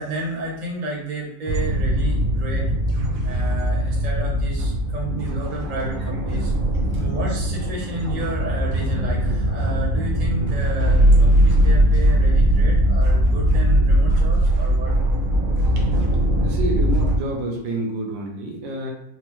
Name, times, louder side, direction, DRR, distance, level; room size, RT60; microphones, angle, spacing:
voice 1, 0.0-2.7 3.2-6.5 6.9-14.9, right 2 dB, 35° right, -3 dB, 0.7 m, -31 dB
sound 1, 1.5-17.2, right 1 dB, 60° right, 0.9 m, -20 dB
voice 2, 16.4-18.9, right 1 dB, 80° right, 0 dB, 1.4 m, -28 dB
4.2 x 2.0 x 3.0 m, 0.83 s
omnidirectional pair, 2.0 m